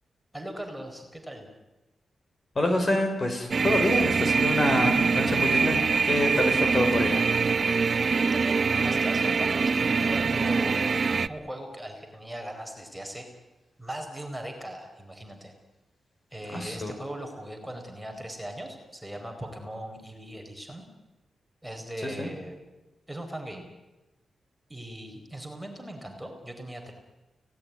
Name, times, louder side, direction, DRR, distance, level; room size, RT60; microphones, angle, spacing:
voice 1, 0.3-1.5 8.1-13.3 13.8-15.5 16.3-20.9 21.6-22.6 23.1-23.7 24.7-26.9, right 1 dB, 5° right, 3 dB, 4.5 m, -39 dB
voice 2, 2.6-7.3 16.5-16.9 22.0-22.3, left 1 dB, 35° left, 5 dB, 5.2 m, -27 dB
sound 1, 3.5-11.3, right 5 dB, 45° right, 0.9 m, -24 dB
29.5 x 18.5 x 9.6 m, 1.1 s
wide cardioid pair, 100°, 0 cm